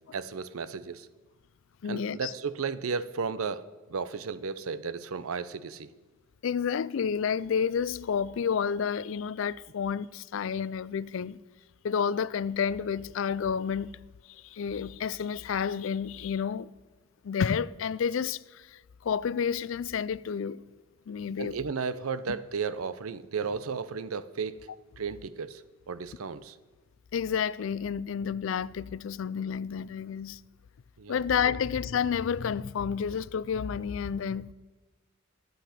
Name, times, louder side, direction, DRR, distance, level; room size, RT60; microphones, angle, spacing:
voice 1, 0.1-1.1 1.9-5.9 21.4-24.6 25.0-26.6 31.0-31.2, right 5 dB, 85° right, 0.6 m, -34 dB
voice 2, 1.8-2.3 6.4-11.4 11.8-13.9 14.3-16.7 17.2-20.6 21.1-21.6 27.1-30.4 31.1-34.5, left 7 dB, 65° left, 0.4 m, -30 dB
12.0 x 8.0 x 5.7 m
head